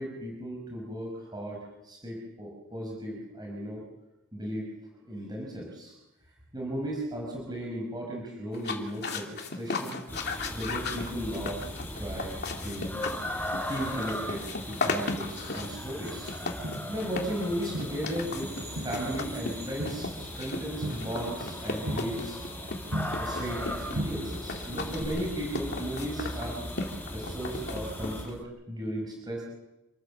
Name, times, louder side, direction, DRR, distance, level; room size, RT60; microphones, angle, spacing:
voice 1, 0.0-1.6 1.8-3.8 4.3-4.7 5.0-5.9 6.5-10.0 10.5-11.6 12.0-12.9 13.6-16.6 16.9-22.4 23.2-26.6 27.1-29.4, equal, 20° right, -1 dB, 5.4 m, -36 dB
sound 1, 8.5-28.4, left 3 dB, 50° left, 2.7 m, -37 dB
sound 2, 10.1-28.2, left 1 dB, 10° left, 5.3 m, -38 dB
Crowd, 16.6-18.4 18.8-23.7 23.9-24.6 25.0-25.1, equal, 65° right, 6.2 m, -38 dB
28.0 x 14.5 x 7.3 m, 0.97 s
head